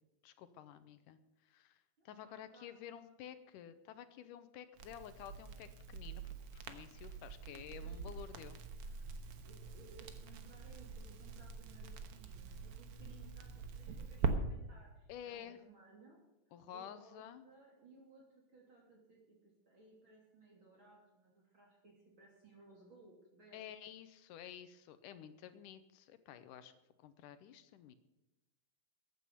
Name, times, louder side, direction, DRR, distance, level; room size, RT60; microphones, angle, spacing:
voice 1, 0.2-8.6 15.1-15.6 16.5-17.5 23.5-26.7 27.0-27.9, left 10 dB, 80° left, 11 dB, 2.4 m, -52 dB
voice 2, 2.0-3.2 7.5-8.0 9.4-16.2 16.7-18.2 18.5-23.8, right 2 dB, 40° right, -2 dB, 3.5 m, -61 dB
Crackle, 4.8-14.3, right 5 dB, 60° right, 1.7 m, -44 dB
15.0 x 9.6 x 7.0 m, 0.97 s
omnidirectional pair, 3.8 m